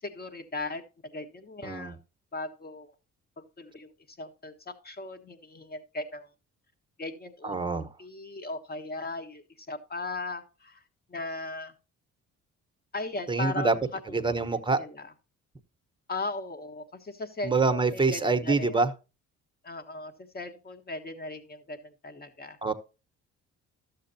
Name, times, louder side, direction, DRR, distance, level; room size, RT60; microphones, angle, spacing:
voice 1, 0.0-2.0 2.3-2.9 3.4-6.3 7.0-10.8 11.1-11.7 12.9-13.7 14.1-15.1 16.1-18.8 19.6-22.6, left 2 dB, 30° left, 1.4 m, -38 dB
voice 2, 1.6-2.0 7.4-7.9 13.3-13.7 14.1-14.8 17.4-18.9 22.6-22.7, right 3 dB, 15° right, 1.0 m, -25 dB
12.5 x 7.5 x 2.7 m
cardioid pair, 90°, 30 cm